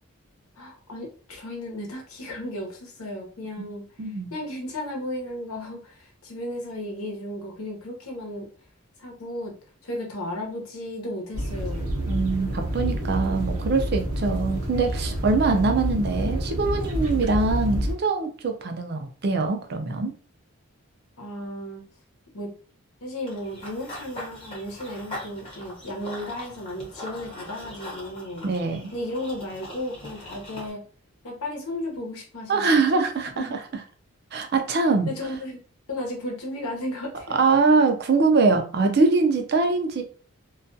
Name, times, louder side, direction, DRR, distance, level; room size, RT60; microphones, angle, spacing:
voice 1, 0.6-3.8 4.3-8.5 9.0-9.5 9.8-11.9 21.2-21.8 22.3-22.5 23.0-28.5 28.9-30.8 31.2-33.0 33.4-33.6 35.0-35.6 35.9-37.4, left 1 dB, 85° left, 1 dB, 0.8 m, -34 dB
voice 2, 4.0-4.3 12.1-20.1 28.4-28.9 32.5-33.6 34.3-35.1 37.3-40.0, right 3 dB, 45° right, 5 dB, 0.4 m, -23 dB
sound 1, 11.3-18.0, equal, 85° right, 0.6 m, -28 dB
Run / Bird vocalization bird call bird song, 23.3-30.7, left 1 dB, 25° left, 0.8 m, -41 dB
2.3 x 2.2 x 2.6 m, 0.40 s
head